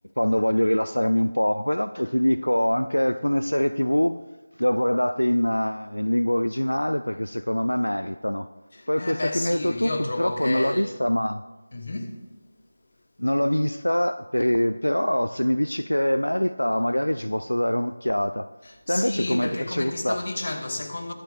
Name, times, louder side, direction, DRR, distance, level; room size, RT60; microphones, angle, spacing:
voice 1, 0.2-4.2 4.6-8.5 8.9-9.9 10.2-11.4 13.2-18.5 18.9-20.2, equal, 80° left, 0.3 m, -24 dB
voice 2, 8.7-10.9 11.7-12.2 18.7-21.1, left 2 dB, 45° left, 1.1 m, -31 dB
21.5 x 7.8 x 2.4 m
figure-of-eight pair, 165°, 0 cm